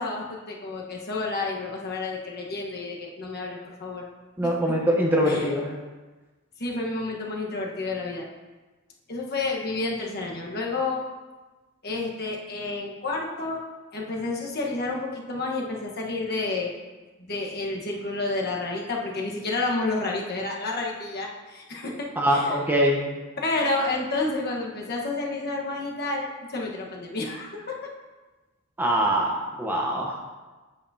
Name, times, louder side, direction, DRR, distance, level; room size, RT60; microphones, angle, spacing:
voice 1, 0.0-4.0 4.4-4.5 5.3-5.5 6.6-8.2 9.1-11.0 11.8-13.6 13.9-16.7 17.2-22.6 23.4-27.8, left 3 dB, 45° left, -2 dB, 1.2 m, -30 dB
voice 2, 4.4-5.7 22.2-23.0 28.8-30.2, equal, 10° right, -2 dB, 0.9 m, -23 dB
8.5 x 8.2 x 2.8 m, 1.2 s
head